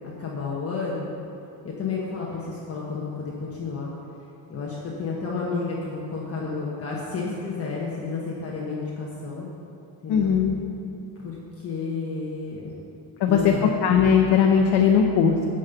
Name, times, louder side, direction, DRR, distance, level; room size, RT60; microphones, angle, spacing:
voice 1, 0.0-1.2 1.6-3.9 4.5-9.5 10.0-10.3 11.2-12.7 13.3-13.7, left 4 dB, 35° left, -4 dB, 1.1 m, -31 dB
voice 2, 10.1-10.6 13.2-13.5 13.8-15.5, left 7 dB, 70° left, 2 dB, 0.8 m, -19 dB
9.2 x 5.4 x 8.0 m, 2.7 s
cardioid pair, 150°, 40 cm